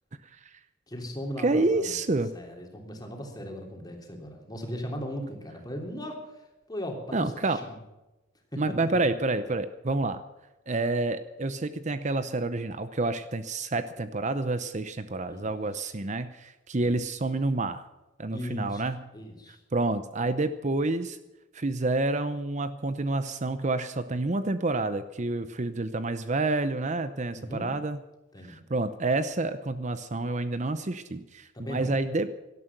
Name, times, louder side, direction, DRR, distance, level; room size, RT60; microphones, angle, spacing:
voice 1, 0.9-2.0 2.3-6.4 6.7-7.8 8.5-8.7 15.3-15.4 16.8-16.9 18.3-18.8 19.1-19.6 27.3-27.7 28.3-28.6 31.5-32.0, equal, 20° left, 2 dB, 3.2 m, -37 dB
voice 2, 1.4-2.3 7.1-7.6 8.6-10.2 10.7-17.9 18.2-19.0 19.7-21.2 21.5-28.0 28.5-32.3, right 2 dB, 40° right, 11 dB, 0.7 m, -28 dB
18.0 x 13.0 x 6.0 m, 1.0 s
head